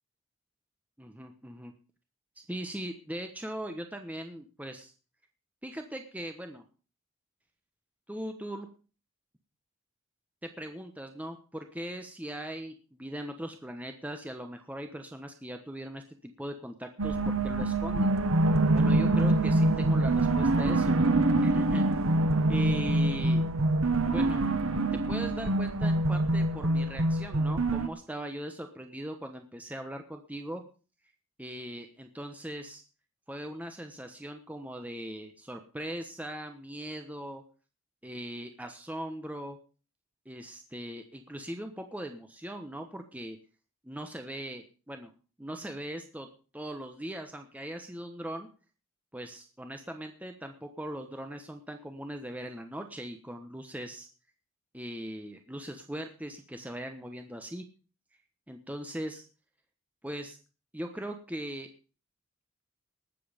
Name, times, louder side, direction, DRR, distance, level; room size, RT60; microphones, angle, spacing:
voice 1, 1.0-1.7 2.4-4.9 5.6-6.6 8.1-8.7 10.4-18.1 18.7-21.0 21.4-21.8 22.5-23.4 24.1-24.4 24.9-30.6 31.4-32.8 33.3-37.4 38.0-39.6 40.2-43.4 43.8-45.1 45.4-46.3 46.5-48.5 49.1-54.1 54.7-57.6 58.5-59.2 60.0-60.4 60.7-61.7, right 1 dB, 5° right, 5 dB, 1.1 m, -40 dB
sound 1, 17.0-27.9, right 2 dB, 90° right, 1.1 m, -25 dB
19.0 x 7.7 x 5.2 m, 0.36 s
head